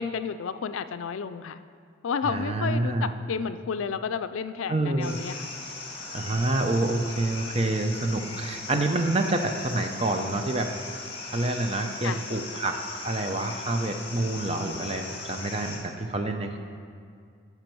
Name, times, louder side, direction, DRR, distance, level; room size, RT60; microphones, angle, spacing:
voice 1, 0.0-1.6 2.0-5.5 12.0-12.3, left 6 dB, 85° left, 12 dB, 0.4 m, -31 dB
voice 2, 2.2-3.1 4.7-5.2 6.1-10.7 11.3-16.6, right 2 dB, 30° right, 5 dB, 0.6 m, -27 dB
sound 1, 5.0-15.8, left 3 dB, 30° left, 1.8 m, -39 dB
13.0 x 5.9 x 4.6 m, 2.2 s
head